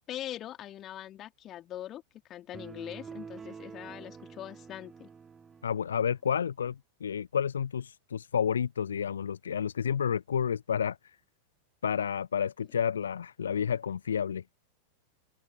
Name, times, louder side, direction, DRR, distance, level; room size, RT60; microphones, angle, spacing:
voice 1, 0.1-2.0 2.3-5.1, left 12 dB, 30° left, 3.7 m, -42 dB
sound 1, 2.5-6.1, right 6 dB, 15° right, 2.6 m, -47 dB
voice 2, 5.6-11.0 11.8-14.4, left 7 dB, 70° left, 0.5 m, -30 dB
open air
figure-of-eight pair, 90°, 0 cm